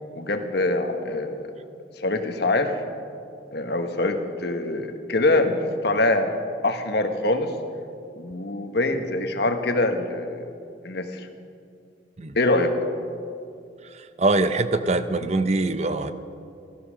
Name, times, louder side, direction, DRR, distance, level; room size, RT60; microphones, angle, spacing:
voice 1, 0.1-1.4 2.0-2.7 3.5-6.3 6.6-7.5 8.2-10.5 10.8-11.3 12.3-12.7, left 2 dB, 60° left, 6 dB, 1.3 m, -24 dB
voice 2, 14.2-16.1, right 2 dB, 35° right, 11 dB, 0.6 m, -23 dB
15.5 x 13.5 x 6.3 m, 2.4 s
head